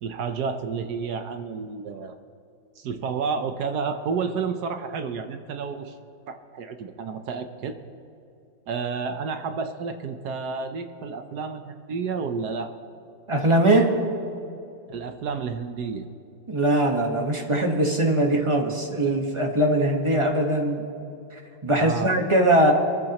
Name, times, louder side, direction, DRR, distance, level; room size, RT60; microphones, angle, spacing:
voice 1, 0.0-2.2 2.8-6.0 6.3-7.8 8.7-12.7 14.9-16.0 21.7-22.1, right 5 dB, 65° right, 8 dB, 1.2 m, -30 dB
voice 2, 13.3-13.9 16.5-20.8 21.6-22.7, right 1 dB, 20° right, 2 dB, 1.1 m, -21 dB
23.0 x 14.0 x 3.0 m, 2.6 s
omnidirectional pair, 2.1 m